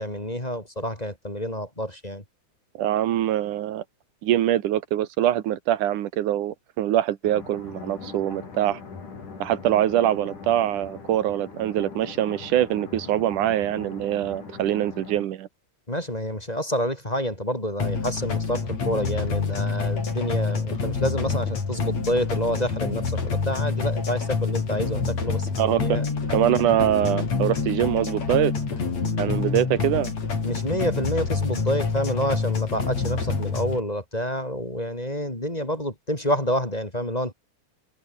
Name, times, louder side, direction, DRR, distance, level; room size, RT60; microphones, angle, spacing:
voice 1, 0.0-2.2 15.9-26.1 30.4-37.3, equal, 10° left, 4.2 m, -28 dB
voice 2, 2.8-3.8 4.2-8.8 9.4-15.5 25.6-26.0 26.3-28.5 29.2-30.1, right 12 dB, 85° right, 2.8 m, -23 dB
sound 1, 7.2-15.2, left 5 dB, 80° left, 6.7 m, -41 dB
sound 2, 17.8-33.8, left 4 dB, 60° left, 5.9 m, -27 dB
omnidirectional pair, 3.5 m